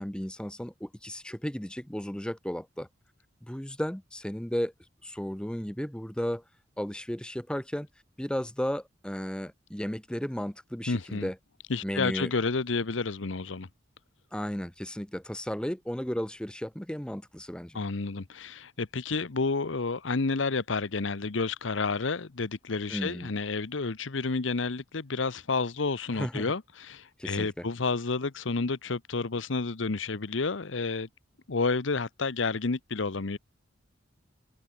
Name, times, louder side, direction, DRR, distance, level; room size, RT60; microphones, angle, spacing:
voice 1, 0.0-2.9 3.4-4.7 5.0-6.4 6.8-7.9 8.2-11.4 11.8-12.3 14.3-17.8 22.9-23.3 26.1-26.5 27.2-27.7, equal, 5° left, 0.8 m, -34 dB
voice 2, 10.9-11.3 11.7-13.7 17.7-31.1 31.5-33.4, left 4 dB, 80° left, 0.9 m, -30 dB
open air
head